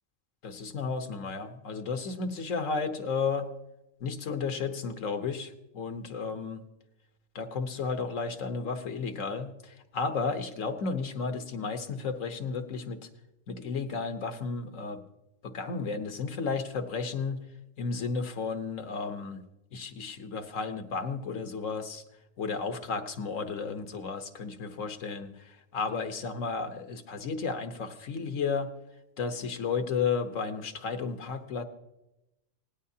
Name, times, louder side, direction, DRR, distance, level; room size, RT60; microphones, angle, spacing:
voice 1, 0.4-3.5 4.0-6.6 7.3-13.1 13.5-15.0 15.4-17.4 17.8-19.4 19.7-22.0 22.4-28.7 29.2-31.6, left 4 dB, 80° left, 7 dB, 1.5 m, -33 dB
25.5 x 18.0 x 2.8 m, 0.95 s
omnidirectional pair, 1.3 m